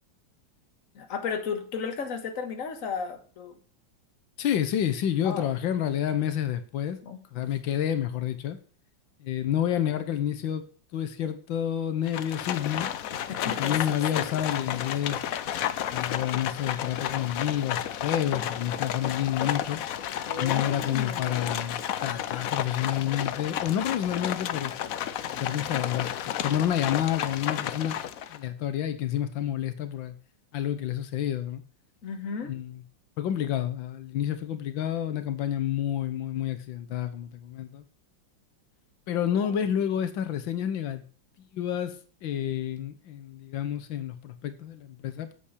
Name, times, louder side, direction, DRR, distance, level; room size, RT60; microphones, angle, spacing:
voice 1, 1.0-3.5 5.2-5.5 7.0-7.2 13.3-14.4 20.2-21.6 32.0-32.5 39.3-39.5, left 5 dB, 45° left, 6 dB, 1.7 m, -35 dB
voice 2, 4.4-7.0 7.3-8.6 9.2-10.6 10.9-12.9 13.3-15.2 15.9-19.8 20.3-24.7 25.3-28.0 28.3-30.1 30.5-31.6 32.5-32.8 33.2-37.8 39.1-41.0 41.5-42.0 42.2-45.3, left 10 dB, 85° left, 10 dB, 1.7 m, -29 dB
Livestock farm animals working animals, 12.1-28.4, left 10 dB, 65° left, 0.9 m, -32 dB
8.6 x 7.3 x 6.6 m, 0.41 s
omnidirectional pair, 2.0 m